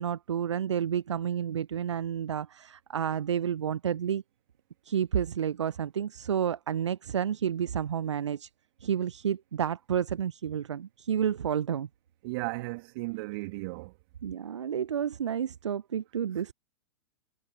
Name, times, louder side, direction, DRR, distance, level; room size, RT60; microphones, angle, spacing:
voice 1, 0.0-4.2 4.9-8.5 8.8-11.9 14.2-16.5, right 8 dB, 70° right, 0.7 m, -30 dB
voice 2, 12.2-13.9, right 24 dB, 50° right, 2.5 m, -35 dB
figure-of-eight pair, 100°, 15 cm